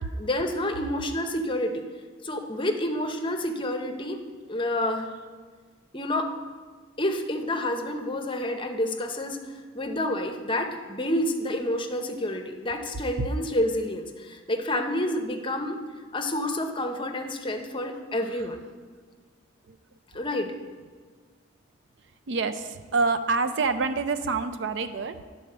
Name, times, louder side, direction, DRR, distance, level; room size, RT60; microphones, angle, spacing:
voice 1, 0.2-1.8 2.2-4.2 4.5-5.1 5.9-6.3 7.0-9.4 9.7-15.8 16.1-18.6 20.1-20.5, left 1 dB, 25° left, 5 dB, 0.7 m, -29 dB
voice 2, 22.3-25.2, right 4 dB, 65° right, 10 dB, 0.5 m, -27 dB
10.0 x 4.2 x 6.6 m, 1.5 s
head